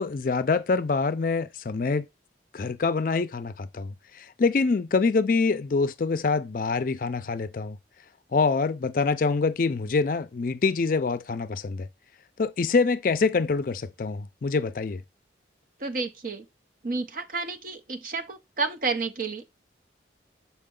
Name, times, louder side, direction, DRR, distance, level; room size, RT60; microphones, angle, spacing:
voice 1, 0.0-2.1 2.5-7.8 8.3-11.9 12.4-15.0, left 4 dB, 50° left, 0.4 m, -25 dB
voice 2, 15.8-16.4 16.8-19.4, right 4 dB, 50° right, 0.8 m, -30 dB
6.6 x 4.3 x 3.7 m
head